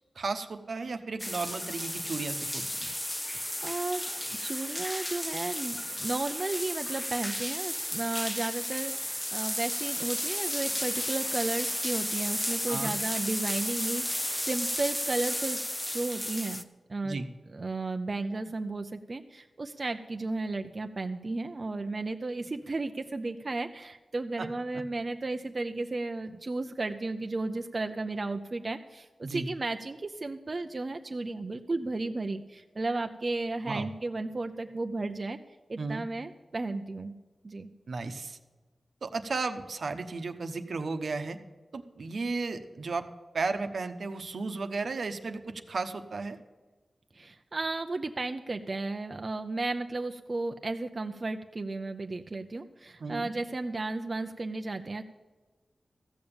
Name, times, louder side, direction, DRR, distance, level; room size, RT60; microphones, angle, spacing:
voice 1, 0.2-2.9 12.7-13.0 17.0-17.2 24.4-24.5 29.2-29.5 33.7-33.9 35.8-36.0 37.9-38.4 39.0-41.4 41.7-43.0 43.3-46.4 53.0-53.3, right 3 dB, 70° right, 7 dB, 0.9 m, -34 dB
sound 1, 1.2-16.6, left 1 dB, 10° left, 0.7 m, -33 dB
voice 2, 3.3-15.6 15.9-16.6 16.9-17.2 17.5-35.4 35.7-37.1 37.4-37.7 47.1-55.0, right 2 dB, 40° right, 6 dB, 0.5 m, -34 dB
14.5 x 7.0 x 8.8 m, 1.3 s
wide cardioid pair, 95°, 0 cm